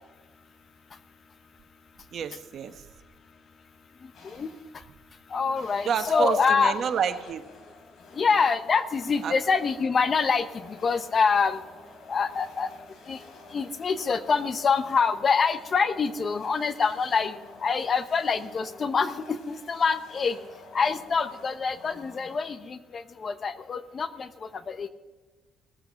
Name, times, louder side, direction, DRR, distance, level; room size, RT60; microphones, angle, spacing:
voice 1, 2.1-2.9 5.8-7.4 9.2-9.4, right 7 dB, 55° right, 8 dB, 1.3 m, -29 dB
sound 1, 4.1-4.8 5.6-22.9, left 2 dB, 55° left, 4.3 m, -49 dB
voice 2, 5.3-6.7 8.1-11.6 12.1-12.7 13.1-13.2 13.5-20.4 20.7-24.9, left 5 dB, 40° left, 12 dB, 0.9 m, -26 dB
18.5 x 8.1 x 6.4 m, 1.3 s
cardioid pair, 100°, 0 cm